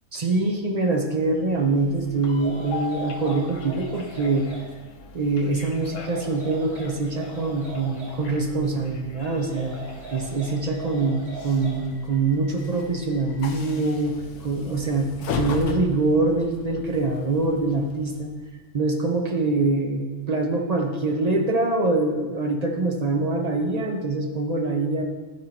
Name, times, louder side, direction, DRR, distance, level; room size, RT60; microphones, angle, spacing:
voice 1, 0.1-4.5 5.1-9.8 10.1-18.3 18.7-25.0, right 3 dB, 35° right, 2 dB, 0.8 m, -24 dB
Train, 1.2-18.5, left 4 dB, 70° left, 1.0 m, -39 dB
sound 1, 2.2-4.7 5.7-8.2 9.4-11.9, right 2 dB, 85° right, 2.8 m, -40 dB
11.5 x 4.7 x 4.3 m, 1.3 s
omnidirectional pair, 1.4 m